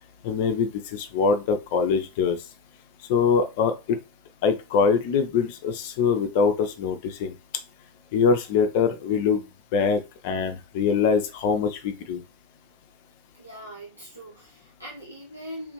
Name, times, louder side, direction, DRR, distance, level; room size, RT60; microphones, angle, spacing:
voice 1, 0.2-2.4 3.1-4.0 4.4-7.3 8.1-9.5 9.7-12.2, left 5 dB, 50° left, 8 dB, 0.5 m, -23 dB
voice 2, 13.3-15.7, equal, 85° right, -2 dB, 0.7 m, -41 dB
3.2 x 2.5 x 3.0 m, 0.28 s
figure-of-eight pair, 90°, 0 cm